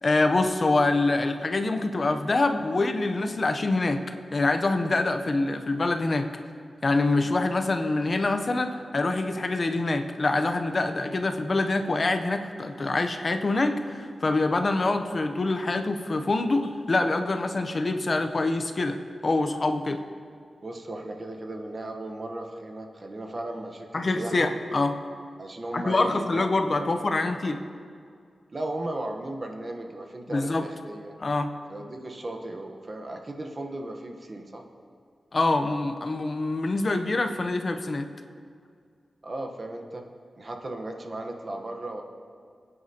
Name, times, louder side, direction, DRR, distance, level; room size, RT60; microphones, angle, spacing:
voice 1, 0.0-4.0 4.3-6.3 6.8-19.0 19.2-20.0 23.9-25.0 25.7-27.6 30.3-30.7 31.2-31.5 35.3-38.1, left 2 dB, 35° left, 7 dB, 0.6 m, -25 dB
voice 2, 20.6-24.5 25.4-27.0 28.5-31.1 31.7-34.6 39.2-40.0 40.4-42.0, right 1 dB, 35° right, 3 dB, 1.0 m, -36 dB
20.5 x 9.5 x 2.8 m, 2.3 s
wide cardioid pair, 165°, 0 cm